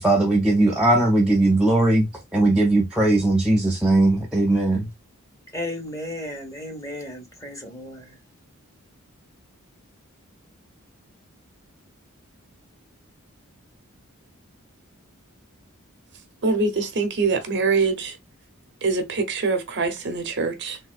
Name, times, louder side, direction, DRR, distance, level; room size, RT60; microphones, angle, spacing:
voice 1, 0.0-4.9, right 2 dB, 5° right, 0.5 m, -19 dB
voice 2, 5.5-8.2, left 1 dB, 15° left, 1.0 m, -34 dB
voice 3, 16.4-18.2 18.8-20.8, right 4 dB, 55° right, 0.7 m, -24 dB
3.4 x 2.6 x 2.4 m
head